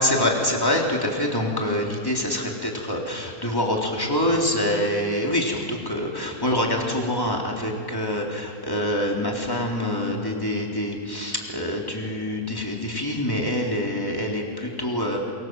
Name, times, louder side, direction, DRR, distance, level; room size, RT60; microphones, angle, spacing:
voice 1, 0.0-15.2, left 1 dB, 15° left, -1 dB, 3.6 m, -25 dB
27.0 x 24.0 x 7.7 m, 2.5 s
omnidirectional pair, 1.5 m